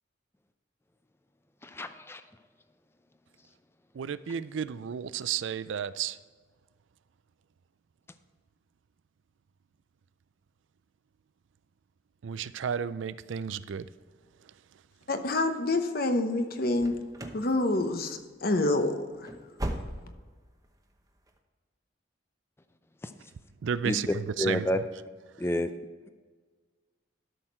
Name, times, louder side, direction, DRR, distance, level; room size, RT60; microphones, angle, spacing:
voice 1, 1.6-2.2 23.0-23.1 23.8-24.8 25.4-25.7, left 1 dB, 10° left, 0.4 m, -29 dB
voice 2, 3.9-6.2 12.2-13.9 23.6-24.7, right 7 dB, 75° right, 0.4 m, -32 dB
voice 3, 15.1-17.0 17.3-19.3, left 2 dB, 50° left, 0.9 m, -27 dB
sound 1, 16.7-17.5 17.7-18.2 18.5-18.6 19.1-20.3 20.6-20.7 21.3-21.4, right 1 dB, 20° right, 0.9 m, -37 dB
12.5 x 6.4 x 4.4 m
head